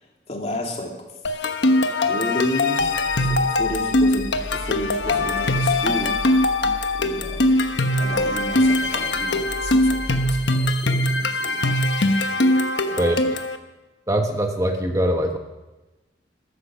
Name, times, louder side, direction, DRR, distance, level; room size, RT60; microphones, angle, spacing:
voice 1, 0.3-0.9 2.1-6.2 7.0-7.7 8.0-11.6 12.9-13.2, left 1 dB, 35° left, 0 dB, 2.7 m, -32 dB
sound 1, 1.2-13.6, left 1 dB, 65° left, 1.2 m, -21 dB
sound 2, 2.8-10.7, equal, 60° right, 4.8 m, -37 dB
voice 2, 14.1-15.4, right 1 dB, 15° right, 4 dB, 1.0 m, -22 dB
15.0 x 13.0 x 6.5 m, 1.1 s
head